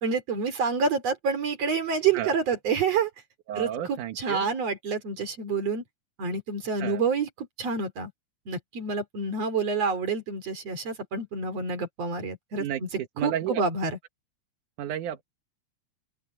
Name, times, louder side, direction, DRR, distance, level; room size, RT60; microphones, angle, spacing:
voice 1, 0.0-3.1 3.6-5.8 6.2-8.1 8.5-12.9 13.2-14.0, right 5 dB, 55° right, 4.2 m, -28 dB
voice 2, 3.5-4.5 6.8-7.0 12.6-13.6 14.8-15.2, right 10 dB, 90° right, 2.8 m, -32 dB
open air
omnidirectional pair, 3.4 m